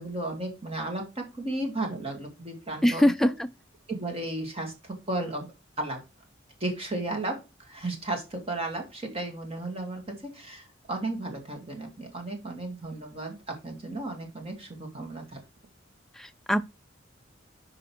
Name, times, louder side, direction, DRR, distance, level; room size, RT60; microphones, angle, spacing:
voice 1, 0.0-3.3 3.9-5.5 5.8-6.0 6.6-15.4, right 2 dB, 30° right, 2.0 m, -34 dB
voice 2, 2.8-3.5 16.2-16.6, left 1 dB, ahead, 0.3 m, -23 dB
6.5 x 5.0 x 4.5 m
head